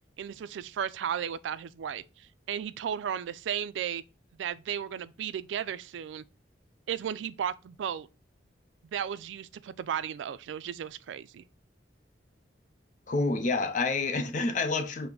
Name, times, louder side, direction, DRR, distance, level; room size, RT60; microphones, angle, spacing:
voice 1, 0.2-4.0 4.4-6.2 6.9-8.1 8.9-11.4, right 8 dB, 85° right, 0.3 m, -34 dB
voice 2, 13.1-15.1, left 3 dB, 45° left, 0.5 m, -28 dB
5.7 x 2.1 x 3.8 m
head